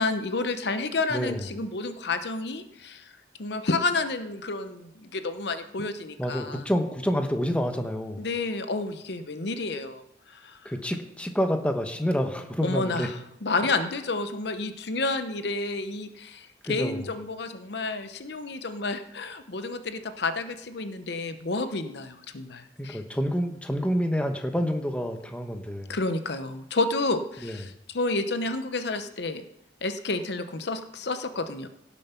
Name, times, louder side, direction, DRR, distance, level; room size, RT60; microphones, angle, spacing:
voice 1, 0.0-3.1 3.4-6.6 8.2-10.0 10.3-10.7 12.6-23.0 25.9-29.4 29.8-31.7, left 3 dB, 65° left, 10 dB, 0.8 m, -30 dB
voice 2, 1.1-1.4 6.2-8.2 10.6-13.1 16.6-17.0 22.8-25.9 27.4-27.6, equal, 5° left, 5 dB, 1.0 m, -28 dB
17.0 x 7.2 x 5.7 m, 0.81 s
head